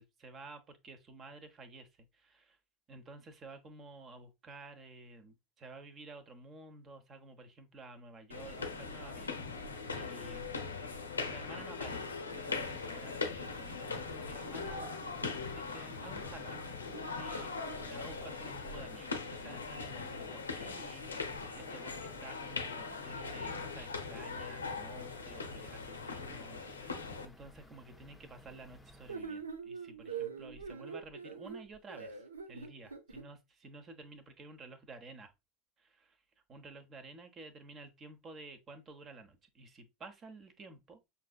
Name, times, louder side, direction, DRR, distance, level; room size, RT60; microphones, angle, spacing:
voice 1, 0.0-2.6 2.9-9.4 9.9-10.8 11.3-14.9 15.5-16.6 17.2-35.3 35.8-36.2 36.5-41.0, right 2 dB, 35° right, 0.9 m, -52 dB
sound 1, 8.3-27.3, left 4 dB, 90° left, 0.5 m, -40 dB
sound 2, 12.4-29.2, equal, 10° left, 0.6 m, -57 dB
sound 3, 29.1-33.2, right 6 dB, 90° right, 0.6 m, -43 dB
5.8 x 2.7 x 2.3 m
hypercardioid pair, 80°, 0 cm